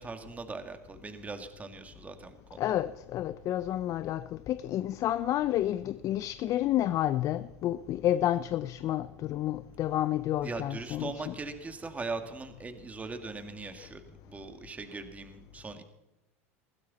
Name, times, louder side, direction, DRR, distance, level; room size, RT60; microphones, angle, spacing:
voice 1, 0.0-2.8 10.4-15.8, right 3 dB, 20° right, 2.2 m, -40 dB
voice 2, 2.6-11.1, left 13 dB, 45° left, 0.6 m, -30 dB
21.0 x 15.0 x 4.2 m
hypercardioid pair, 95°, 8 cm